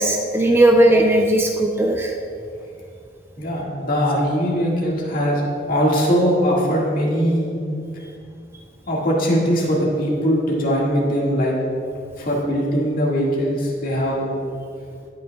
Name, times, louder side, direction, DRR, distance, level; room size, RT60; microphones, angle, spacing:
voice 1, 0.0-2.1, right 1 dB, 15° right, 3 dB, 0.4 m, -16 dB
voice 2, 3.4-5.4 5.7-7.6 8.9-11.6 12.2-14.4, equal, 55° left, -4 dB, 1.8 m, -20 dB
18.0 x 6.2 x 2.3 m, 2.4 s
head